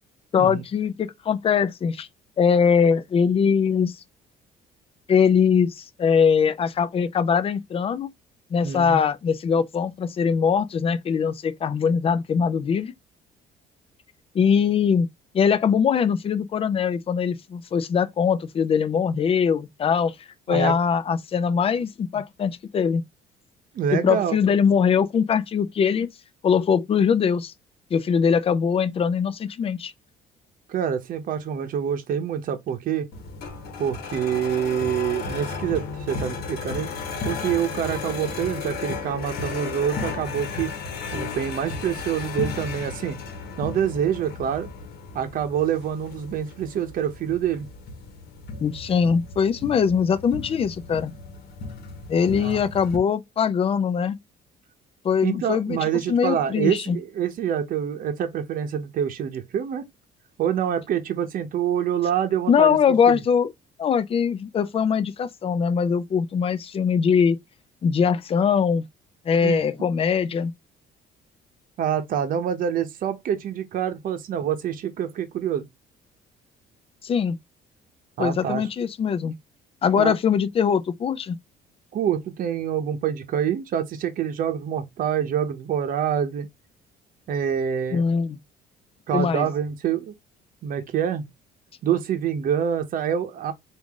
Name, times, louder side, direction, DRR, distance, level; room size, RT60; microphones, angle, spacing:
voice 1, 0.3-2.1 2.4-4.0 5.1-8.1 8.5-12.9 14.3-15.1 15.3-20.2 20.5-23.0 23.9-26.1 26.4-27.5 27.9-29.9 48.6-51.1 52.1-54.2 55.0-57.0 62.5-63.5 63.8-67.4 67.8-68.8 69.3-70.5 77.0-77.4 78.2-79.3 79.8-81.4 87.9-88.4 89.1-89.5, left 6 dB, 35° left, 0.5 m, -22 dB
voice 2, 8.6-9.0 20.5-20.7 23.7-24.4 30.7-33.1 33.8-36.9 37.2-40.7 41.1-43.2 43.6-44.7 45.1-47.7 52.4-52.6 55.2-59.9 60.4-62.8 63.1-63.2 69.4-69.9 71.8-75.6 78.2-78.7 79.9-80.2 81.9-86.5 87.3-88.0 89.1-90.1 90.6-91.3 91.8-93.5, right 9 dB, 55° right, 0.8 m, -26 dB
sound 1, 33.1-53.0, left 4 dB, 70° left, 1.2 m, -34 dB
3.6 x 2.6 x 3.4 m
cardioid pair, 110°, 17 cm